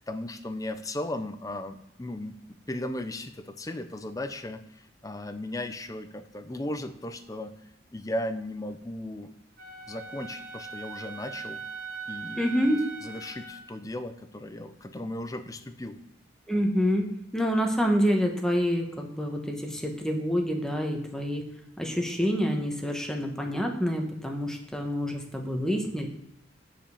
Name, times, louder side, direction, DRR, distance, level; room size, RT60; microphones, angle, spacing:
voice 1, 0.1-2.3 2.7-4.6 5.0-7.5 7.9-9.3 9.9-11.6 12.1-12.4 13.0-16.0, left 1 dB, 20° left, 9 dB, 0.6 m, -36 dB
Wind instrument woodwind instrument, 9.6-13.6, right 5 dB, 50° right, 1.3 m, -40 dB
voice 2, 12.4-12.9 16.5-21.5 21.8-26.1, equal, 5° left, 2 dB, 1.2 m, -27 dB
8.7 x 5.2 x 7.0 m, 0.82 s
head